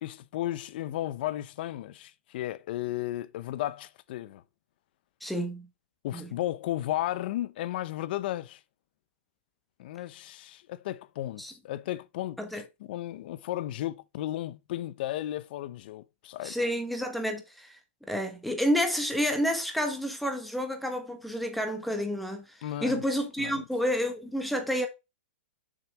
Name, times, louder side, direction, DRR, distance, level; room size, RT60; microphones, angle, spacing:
voice 1, 0.0-4.4 6.0-8.6 9.8-12.6 12.9-16.6 22.6-23.0 23.4-23.6, left 14 dB, 45° left, 0.6 m, -34 dB
voice 2, 5.2-5.7 6.1-6.3 11.4-11.5 12.4-12.6 16.4-17.8 18.1-24.9, equal, ahead, 1.2 m, -30 dB
6.7 x 6.0 x 3.4 m
hypercardioid pair, 165°, 7 cm